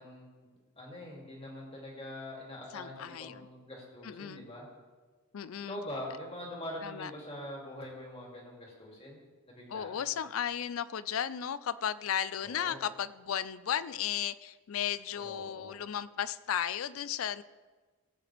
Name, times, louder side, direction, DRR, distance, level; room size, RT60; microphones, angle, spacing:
voice 1, 0.0-4.7 5.6-9.2 9.5-10.1 12.4-12.8 15.2-15.8, left 1 dB, 30° left, -2 dB, 2.8 m, -44 dB
voice 2, 2.7-3.5 4.0-4.4 5.3-5.8 6.8-7.1 9.7-17.4, left 9 dB, 80° left, 17 dB, 0.4 m, -35 dB
18.5 x 8.4 x 3.5 m, 1.4 s
head